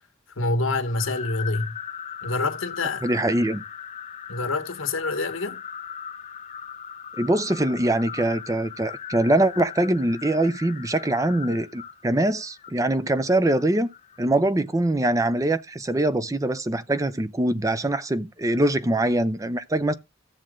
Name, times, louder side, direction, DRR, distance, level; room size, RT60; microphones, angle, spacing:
voice 1, 0.4-1.8 2.2-3.0 4.3-5.6, left 2 dB, 85° left, 1.4 m, -26 dB
sound 1, 0.8-14.2, left 8 dB, 35° left, 0.8 m, -39 dB
voice 2, 3.0-3.6 7.2-13.9 14.2-19.9, right 1 dB, 15° right, 0.5 m, -23 dB
14.0 x 7.5 x 3.7 m
head